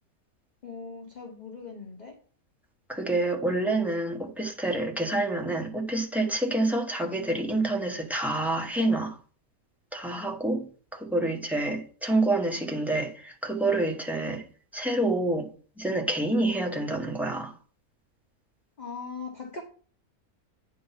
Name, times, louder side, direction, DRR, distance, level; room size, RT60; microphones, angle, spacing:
voice 1, 0.6-2.1 18.8-19.6, left 4 dB, 35° left, 1.0 m, -40 dB
voice 2, 2.9-9.2 9.9-10.7 10.9-14.4 14.7-15.5 15.8-17.5, right 2 dB, ahead, 0.9 m, -27 dB
9.3 x 3.9 x 5.6 m
omnidirectional pair, 1.5 m